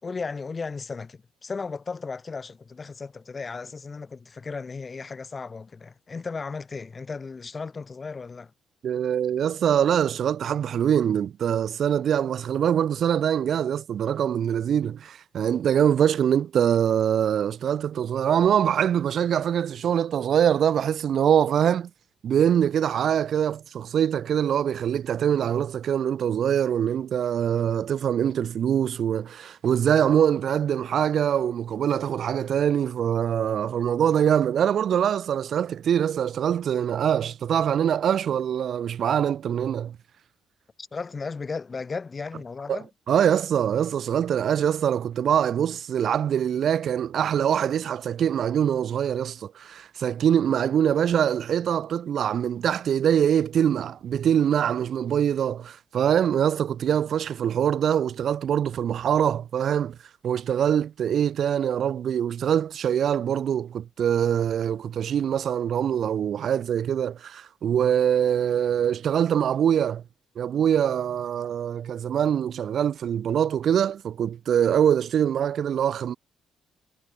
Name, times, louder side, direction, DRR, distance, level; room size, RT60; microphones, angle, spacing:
voice 1, 0.0-8.5 40.8-42.9, left 4 dB, 30° left, 4.1 m, -35 dB
voice 2, 8.8-21.9 22.2-40.0 42.7-42.8 43.1-60.0 60.2-70.0 70.4-76.1, right 9 dB, 60° right, 0.8 m, -23 dB
cardioid pair, 90°, 0 cm